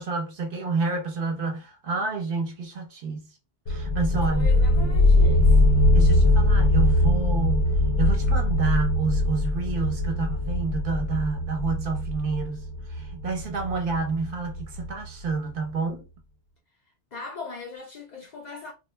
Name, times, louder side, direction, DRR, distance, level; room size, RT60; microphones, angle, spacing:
voice 1, 0.0-3.3 3.7-4.6 5.9-16.0, right 4 dB, 60° right, 0.7 m, -29 dB
sound 1, 3.7-15.1, left 1 dB, 80° left, 0.9 m, -22 dB
voice 2, 4.3-5.8 17.1-18.7, left 3 dB, 55° left, 0.5 m, -40 dB
2.2 x 2.1 x 3.0 m
omnidirectional pair, 1.1 m